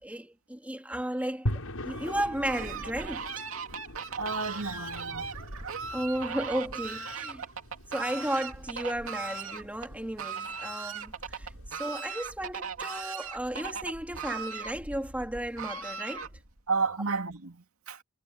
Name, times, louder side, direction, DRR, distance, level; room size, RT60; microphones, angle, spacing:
voice 1, 0.0-1.6 1.8-3.4 5.9-7.5 7.9-16.3, right 1 dB, 5° right, 2.6 m, -34 dB
sound 1, 1.5-11.7, equal, 90° left, 6.1 m, -42 dB
Fowl, 1.8-16.6, right 5 dB, 65° right, 2.7 m, -39 dB
voice 2, 4.1-5.4 16.7-18.0, right 4 dB, 85° right, 2.4 m, -32 dB
head